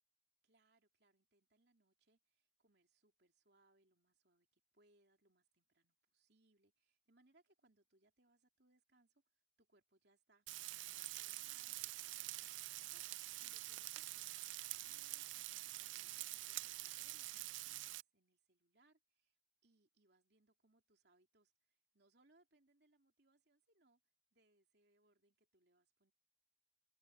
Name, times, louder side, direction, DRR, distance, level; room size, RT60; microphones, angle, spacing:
voice 1, 0.4-10.5 10.8-14.3 14.8-19.4 19.6-24.0 24.3-26.1, right 2 dB, 55° right, 3.3 m, -76 dB
Frying (food), 10.5-18.0, right 18 dB, 70° right, 0.4 m, -47 dB
head